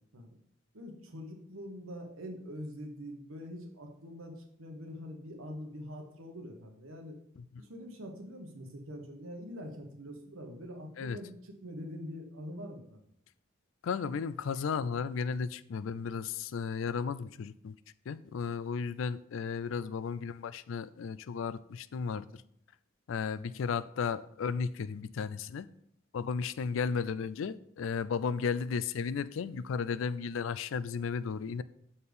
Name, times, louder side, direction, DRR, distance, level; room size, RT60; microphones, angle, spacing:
voice 1, 0.7-7.2 7.6-13.0, equal, 80° right, 1.3 m, -44 dB
voice 2, 13.8-17.7 18.1-22.4 23.1-25.7 26.1-31.6, left 6 dB, 65° left, 0.3 m, -34 dB
6.6 x 4.3 x 5.2 m
head